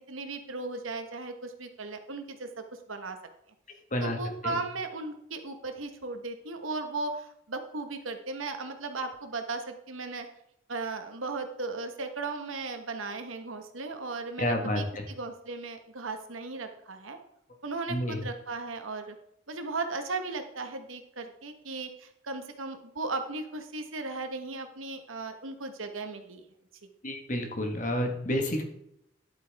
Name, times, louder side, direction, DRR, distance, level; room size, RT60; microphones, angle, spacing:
voice 1, 0.1-3.2 4.0-10.3 10.7-17.2 17.6-19.1 19.5-26.4, right 3 dB, 85° right, 6 dB, 1.4 m, -36 dB
voice 2, 14.4-15.0 17.9-18.2 27.0-28.6, left 1 dB, 40° left, 3 dB, 1.6 m, -29 dB
11.0 x 8.6 x 3.5 m, 0.78 s
head